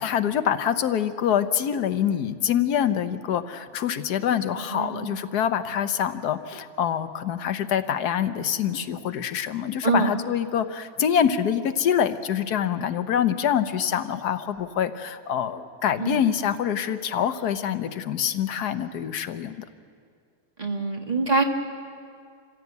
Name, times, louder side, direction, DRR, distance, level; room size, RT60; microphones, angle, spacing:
voice 1, 0.0-19.6, left 9 dB, 90° left, 10 dB, 1.4 m, -25 dB
voice 2, 4.7-5.1 9.8-10.1 16.0-16.3 20.6-21.4, right 3 dB, 25° right, 2 dB, 1.8 m, -24 dB
27.0 x 16.0 x 8.2 m, 2.3 s
omnidirectional pair, 1.6 m